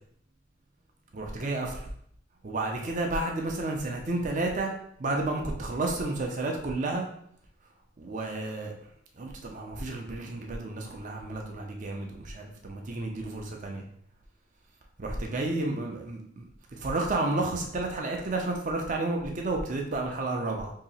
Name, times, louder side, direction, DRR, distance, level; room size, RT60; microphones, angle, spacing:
voice 1, 1.1-1.9 2.4-7.1 8.0-13.8 15.0-16.5 16.8-20.7, right 2 dB, 35° right, 1 dB, 0.5 m, -31 dB
2.8 x 2.8 x 4.1 m, 0.67 s
head